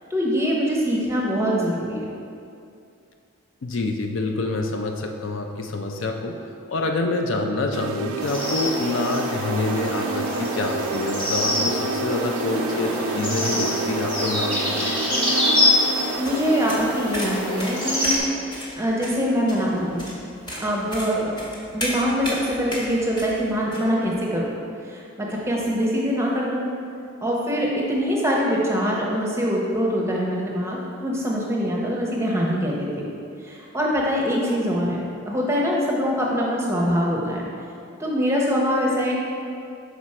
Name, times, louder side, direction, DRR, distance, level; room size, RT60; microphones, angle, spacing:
voice 1, 0.1-2.0 16.2-18.2 18.8-20.1 20.6-24.5 24.8-26.7 27.2-33.1 33.4-35.0 35.3-37.4 38.0-39.2, equal, 10° right, -3 dB, 0.7 m, -23 dB
voice 2, 3.6-6.3 6.7-15.0, left 2 dB, 60° left, 3 dB, 0.4 m, -27 dB
sound 1, 7.7-17.8, right 4 dB, 80° right, 0.3 m, -30 dB
sound 2, 8.2-18.2, left 1 dB, 5° left, 1.2 m, -25 dB
sound 3, 16.0-23.8, equal, 20° left, 1.0 m, -34 dB
6.1 x 4.0 x 4.2 m, 2.5 s
head